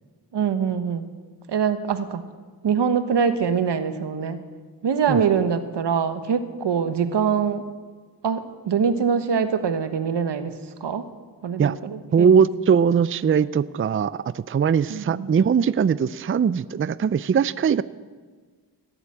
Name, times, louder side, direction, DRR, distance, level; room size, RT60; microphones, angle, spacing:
voice 1, 0.3-1.1 1.5-2.2 2.6-4.4 4.8-7.6 8.2-10.5 10.8-11.1 11.4-12.3 14.9-15.3, right 6 dB, 80° right, 10 dB, 1.2 m, -24 dB
voice 2, 12.1-17.8, right 7 dB, 30° right, 17 dB, 0.5 m, -20 dB
18.0 x 8.1 x 8.8 m, 1.5 s
cardioid pair, 55°, 41 cm